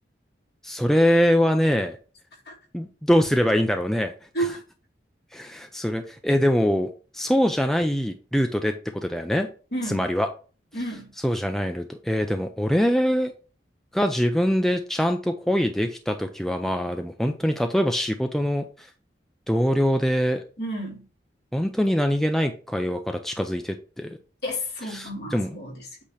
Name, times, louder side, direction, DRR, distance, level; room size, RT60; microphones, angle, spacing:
voice 1, 0.6-2.0 2.7-4.1 5.3-9.5 9.9-10.3 11.2-13.3 13.9-18.9 19.5-20.4 21.5-24.1 24.8-25.5, equal, ahead, 0.4 m, -23 dB
voice 2, 9.7-10.1 10.7-11.1 20.6-21.0 24.4-25.8, right 1 dB, 60° left, 2.9 m, -31 dB
8.4 x 2.9 x 5.0 m
head